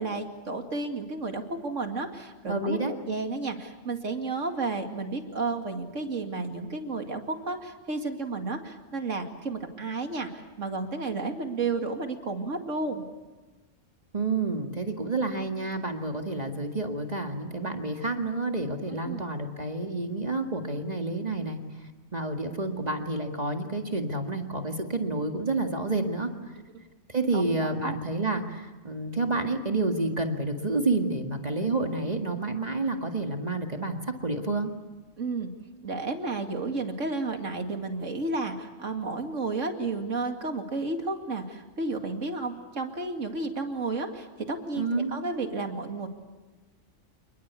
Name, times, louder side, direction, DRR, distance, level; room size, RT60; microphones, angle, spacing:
voice 1, 0.0-13.0 19.0-19.2 27.3-28.0 35.2-35.5 35.8-46.1, right 3 dB, 80° right, 5 dB, 2.6 m, -32 dB
voice 2, 2.5-2.9 14.1-21.6 22.1-26.3 27.1-34.7 44.7-45.1, right 2 dB, 35° right, 4 dB, 2.0 m, -29 dB
28.5 x 20.5 x 8.4 m, 1.2 s
omnidirectional pair, 1.3 m